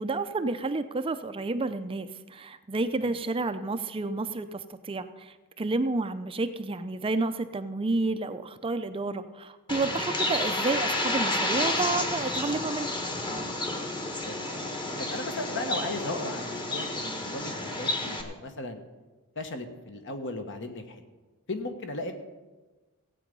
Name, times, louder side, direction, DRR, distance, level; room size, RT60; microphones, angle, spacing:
voice 1, 0.0-12.9, right 3 dB, 25° right, 10 dB, 0.4 m, -30 dB
Bird, 9.7-18.2, left 2 dB, 20° left, 1.3 m, -30 dB
voice 2, 13.9-14.3 14.6-14.7 15.0-18.9 19.3-21.0 21.5-22.1, left 2 dB, 55° left, 6 dB, 1.3 m, -36 dB
16.0 x 8.4 x 5.4 m, 1.2 s
head